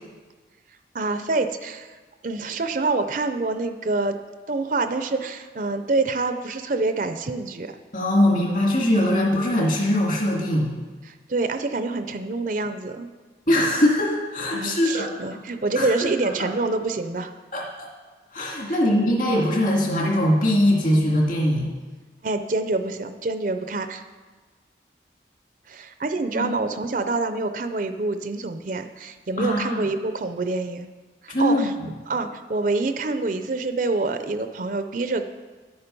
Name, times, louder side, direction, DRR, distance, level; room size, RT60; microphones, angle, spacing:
voice 1, 0.9-1.9 2.2-4.2 4.5-7.8 11.1-13.1 14.5-17.3 18.7-18.8 22.2-24.0 25.7-30.9 31.2-31.7 32.1-35.3, right 3 dB, 45° right, 9 dB, 0.5 m, -26 dB
voice 2, 7.9-10.7 13.5-15.4 15.8-16.1 16.4-16.5 17.5-17.9 18.3-21.7 26.3-26.5 29.4-29.9 31.3-31.9, left 1 dB, 50° left, -2 dB, 2.1 m, -22 dB
10.0 x 8.8 x 5.4 m, 1.3 s
head